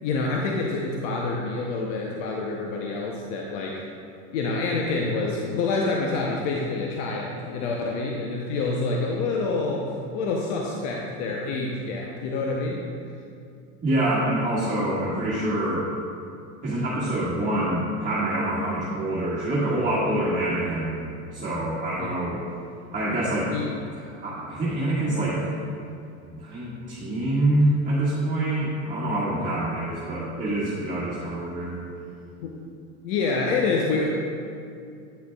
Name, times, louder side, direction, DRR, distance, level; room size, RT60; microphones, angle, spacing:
voice 1, 0.0-3.8 4.3-9.9 10.1-12.8 22.0-22.1 23.5-23.7 29.4-29.5 32.4-32.5 33.0-34.1, left 3 dB, 70° left, -1 dB, 0.8 m, -27 dB
voice 2, 13.8-15.8 16.6-22.4 22.9-23.5 23.9-25.4 26.3-31.8, right 1 dB, 20° right, -9 dB, 1.6 m, -26 dB
9.2 x 6.3 x 2.3 m, 2.5 s
supercardioid pair, 115°, 37 cm